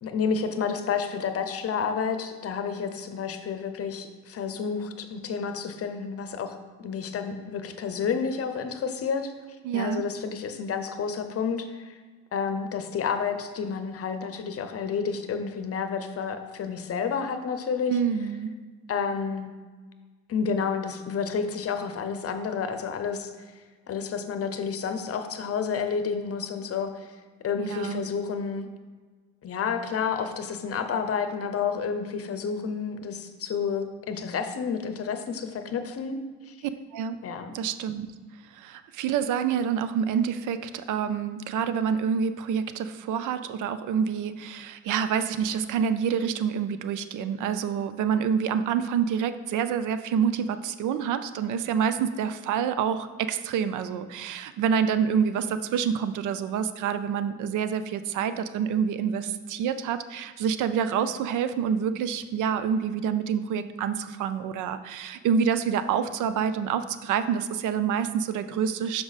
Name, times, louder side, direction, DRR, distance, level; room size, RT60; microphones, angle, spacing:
voice 1, 0.0-9.3 9.7-12.0 12.3-18.0 18.9-19.5 20.3-23.3 23.9-27.1 27.4-28.7 29.4-36.2 36.5-36.6 37.2-37.6, left 6 dB, 50° left, 8 dB, 0.7 m, -30 dB
voice 2, 9.6-10.0 17.9-18.5 27.6-28.0 36.9-37.2 37.5-38.1 38.5-69.0, right 7 dB, 80° right, 12 dB, 0.5 m, -27 dB
6.0 x 4.9 x 4.1 m, 1.5 s
cardioid pair, 90°, 30 cm